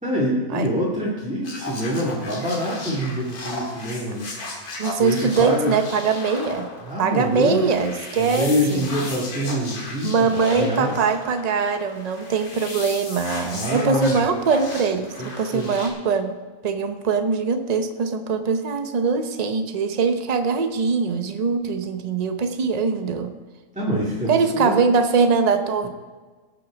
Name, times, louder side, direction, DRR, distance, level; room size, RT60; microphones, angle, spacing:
voice 1, 0.0-4.3 5.0-5.7 6.8-7.7 8.2-10.3 10.6-10.9 13.5-14.2 15.2-15.7 23.7-24.8, equal, 5° right, -7 dB, 2.1 m, -25 dB
sound 1, 1.4-15.9, left 2 dB, 75° left, 2.3 m, -35 dB
voice 2, 4.8-6.7 7.0-9.1 10.0-23.3 24.3-25.9, right 5 dB, 35° right, 7 dB, 0.7 m, -22 dB
17.5 x 6.3 x 5.1 m, 1.4 s
omnidirectional pair, 1.6 m